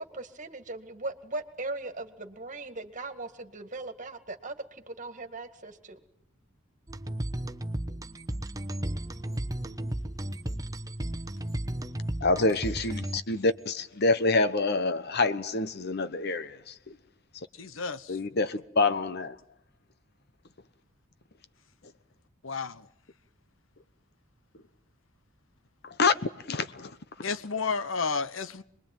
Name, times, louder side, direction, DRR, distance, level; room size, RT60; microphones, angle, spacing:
voice 1, 0.0-6.0, right 2 dB, 40° right, 2.1 m, -39 dB
sound 1, 6.9-13.5, right 1 dB, 15° right, 1.1 m, -34 dB
voice 2, 12.2-17.0 18.1-19.4 25.8-26.2 26.5-27.0, left 3 dB, 55° left, 1.1 m, -27 dB
voice 3, 17.6-18.2 22.4-22.9 27.2-28.6, left 5 dB, 75° left, 1.0 m, -32 dB
26.5 x 21.5 x 9.1 m
head